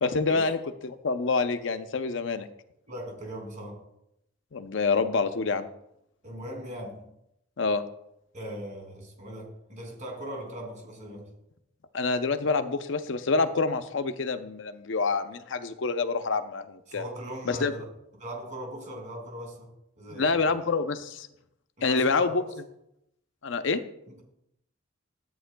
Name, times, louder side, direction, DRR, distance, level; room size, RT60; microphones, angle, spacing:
voice 1, 0.0-0.6 0.8-2.5 4.5-5.7 7.6-7.8 11.9-17.0 17.5-17.7 20.1-21.3 21.8-22.4 23.4-23.8, left 4 dB, 65° left, 10 dB, 0.6 m, -27 dB
voice 2, 2.9-3.8 6.2-7.1 8.3-11.3 16.9-17.9 18.2-19.7 20.0-20.5 21.8-22.5 24.1-24.2, right 1 dB, 40° right, 1 dB, 2.5 m, -39 dB
12.5 x 8.8 x 2.2 m, 0.81 s
head